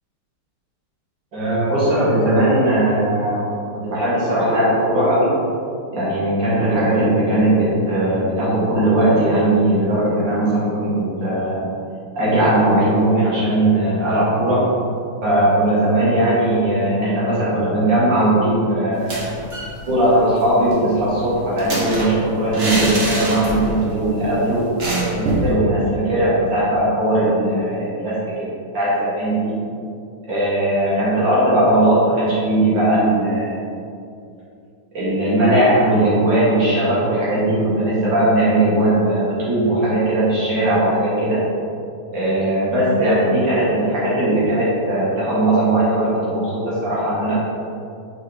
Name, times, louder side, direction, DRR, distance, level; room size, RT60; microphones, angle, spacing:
voice 1, 1.3-3.4 3.7-5.3 5.9-11.6 12.1-14.7 15.2-19.3 19.9-24.6 25.1-29.5 30.3-33.6 34.9-41.4 42.1-47.4, right 1 dB, 60° right, -9 dB, 2.3 m, -18 dB
sound 1, 18.9-19.7 20.0-20.1 20.4-23.9 24.1-24.3 24.8-25.5, right 1 dB, 40° right, 0.9 m, -24 dB
5.4 x 4.1 x 4.9 m, 2.5 s
omnidirectional pair, 2.4 m